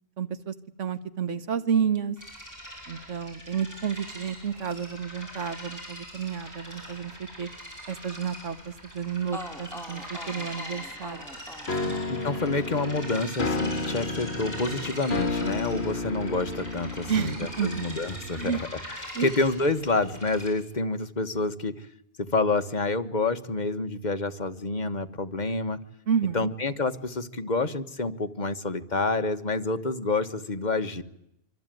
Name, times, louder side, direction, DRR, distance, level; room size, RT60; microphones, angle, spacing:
voice 1, 0.2-2.1 2.9-7.5 7.9-8.6 8.9-11.2 11.8-12.0 17.1-17.8 18.3-18.6 19.1-19.3 26.1-26.5, right 7 dB, 70° right, 12 dB, 1.7 m, -30 dB
sound 1, 2.2-20.5, equal, 15° right, 8.2 m, -42 dB
sound 2, 8.9-9.0 9.3-17.2 17.4-18.6, left 1 dB, ahead, 2.8 m, -47 dB
sound 3, 11.7-18.5, left 3 dB, 55° left, 1.8 m, -32 dB
voice 2, 12.1-21.9 22.2-25.8 26.3-31.0, left 3 dB, 35° left, 9 dB, 1.5 m, -28 dB
26.0 x 25.0 x 9.2 m, 0.78 s
omnidirectional pair, 1.3 m